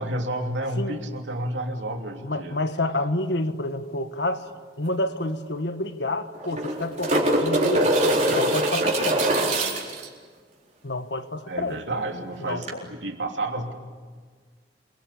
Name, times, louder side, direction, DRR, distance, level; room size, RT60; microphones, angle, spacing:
voice 1, 0.0-2.6 11.5-13.7, right 1 dB, 85° right, 3.0 m, -30 dB
voice 2, 2.2-4.5 4.8-8.0 8.3-9.3 10.8-11.8 12.4-12.9, left 2 dB, 70° left, 1.5 m, -29 dB
sound 1, 4.9-5.0 5.2-5.3 6.3-10.1 12.6-12.7, right 1 dB, 40° right, 4.2 m, -22 dB
28.0 x 23.0 x 8.5 m
head